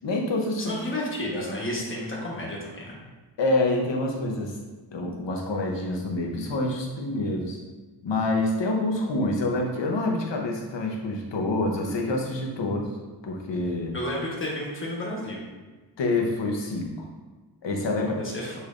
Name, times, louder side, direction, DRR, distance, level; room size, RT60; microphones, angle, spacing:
voice 1, 0.0-0.8 1.3-1.5 3.4-4.6 4.9-7.6 8.0-13.0 13.2-13.9 16.0-17.1 17.6-18.2, left 2 dB, 80° left, 1 dB, 0.8 m, -27 dB
voice 2, 0.6-3.0 13.9-15.5 18.0-18.5, left 1 dB, 30° left, -4 dB, 1.1 m, -32 dB
6.7 x 3.2 x 2.5 m, 1.3 s
wide cardioid pair, 130°, 42 cm